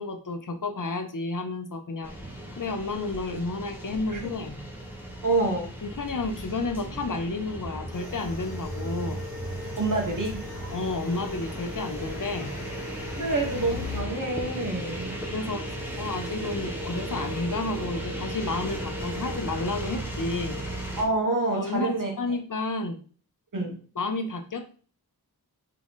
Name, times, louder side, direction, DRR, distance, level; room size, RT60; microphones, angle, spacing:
voice 1, 0.0-2.1 2.6-4.6 5.5-9.3 10.7-12.6 15.1-20.6 21.5-23.0 24.0-24.7, left 3 dB, 50° left, 6 dB, 0.7 m, -31 dB
sound 1, 2.0-21.0, right 1 dB, 5° right, 1.1 m, -36 dB
voice 2, 5.2-5.7 9.8-10.4 13.2-15.2 21.0-22.1 23.5-23.8, right 2 dB, 50° right, 1 dB, 1.4 m, -27 dB
sound 2, 7.9-14.0, left 2 dB, 85° right, 1.9 m, -41 dB
3.8 x 3.7 x 3.6 m, 0.41 s
wide cardioid pair, 85°, 39 cm